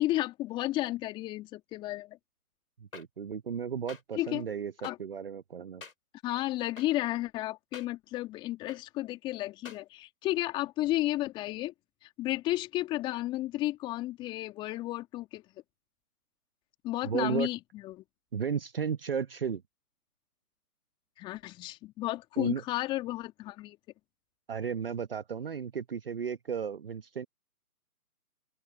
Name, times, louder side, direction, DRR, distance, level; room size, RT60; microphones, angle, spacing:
voice 1, 0.0-2.2 4.2-4.5 4.8-5.0 6.2-11.7 12.0-15.4 16.8-18.0 21.2-23.8, left 16 dB, 10° left, 2.7 m, -32 dB
sound 1, 2.9-3.0 3.9-4.0 4.8-4.9 5.8-5.9 6.8-6.9 7.7-7.9 8.7-8.8 9.6-9.8, left 5 dB, 60° left, 5.7 m, -45 dB
voice 2, 2.9-4.7 5.0-5.8 17.0-17.5 18.3-19.6 22.4-22.6 24.5-27.3, right 7 dB, 35° right, 1.2 m, -34 dB
open air
figure-of-eight pair, 150°, 46 cm